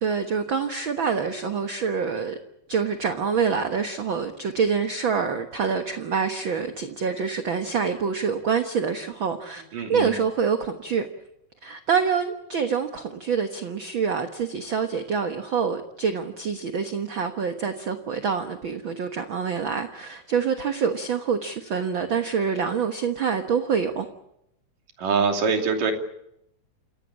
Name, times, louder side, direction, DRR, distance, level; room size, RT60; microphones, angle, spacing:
voice 1, 0.0-2.4 2.7-9.6 9.9-11.1 11.6-24.1, right 6 dB, 50° right, 6 dB, 1.6 m, -26 dB
voice 2, 9.7-10.2 25.0-25.9, right 5 dB, 85° right, 3 dB, 4.5 m, -24 dB
28.0 x 17.5 x 8.6 m, 0.80 s
omnidirectional pair, 3.7 m